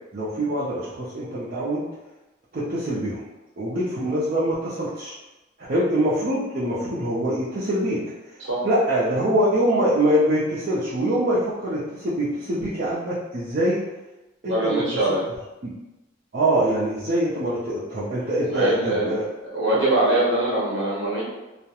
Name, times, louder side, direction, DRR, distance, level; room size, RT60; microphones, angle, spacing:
voice 1, 0.1-1.8 2.5-3.2 3.6-5.1 5.7-8.0 8.3-8.4 8.6-13.8 14.4-14.8 15.6-15.7 16.3-19.3, right 1 dB, 50° right, -10 dB, 0.5 m, -24 dB
voice 2, 14.5-15.2 18.5-19.1 19.5-21.2, right 1 dB, 70° right, -6 dB, 0.9 m, -22 dB
2.3 x 2.1 x 2.8 m, 1.0 s
head